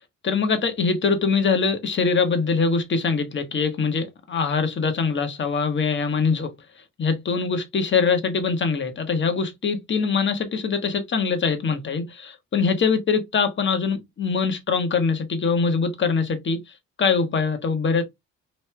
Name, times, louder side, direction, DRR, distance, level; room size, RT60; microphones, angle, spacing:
voice 1, 0.2-6.5 7.0-16.6 17.0-18.0, left 5 dB, 40° left, 1.0 m, -23 dB
3.1 x 2.7 x 3.2 m
cardioid pair, 90°, 30 cm